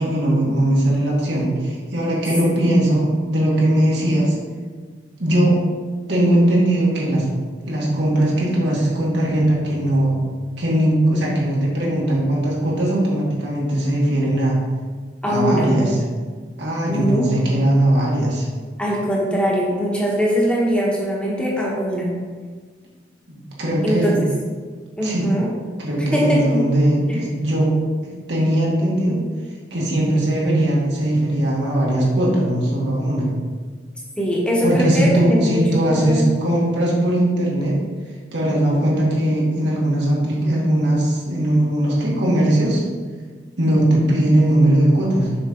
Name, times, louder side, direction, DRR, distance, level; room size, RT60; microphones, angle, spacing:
voice 1, 0.0-4.4 5.2-5.6 6.1-7.3 7.7-10.2 10.6-14.6 15.3-16.0 16.6-18.5 23.3-24.2 25.0-25.3 25.8-27.7 28.1-29.2 29.7-33.3 34.6-37.8 38.3-42.8 43.6-45.4, right 1 dB, 75° right, -4 dB, 1.9 m, -19 dB
voice 2, 15.2-16.1 16.9-17.3 18.8-22.1 23.8-24.2 25.0-25.5 26.1-26.6 27.1-27.2 34.2-35.6 35.9-36.2, equal, 5° left, -4 dB, 1.2 m, -21 dB
6.9 x 5.4 x 3.8 m, 1.5 s
head